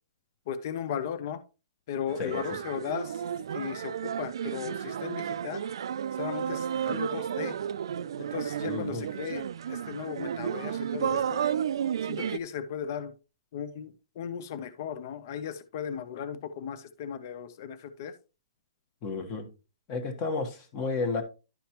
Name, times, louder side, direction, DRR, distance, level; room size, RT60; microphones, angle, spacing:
voice 1, 0.5-1.4 1.9-3.2 3.5-5.6 6.2-7.5 8.2-11.4 12.0-13.1 13.5-18.1, left 8 dB, 40° left, 0.6 m, -36 dB
sound 1, 2.1-12.4, right 9 dB, 70° right, 0.3 m, -32 dB
voice 2, 2.2-2.6 6.9-7.0 8.7-9.1 19.0-19.5 19.9-21.2, left 4 dB, 25° left, 1.2 m, -32 dB
11.5 x 5.1 x 2.9 m
hypercardioid pair, 170°, 3 cm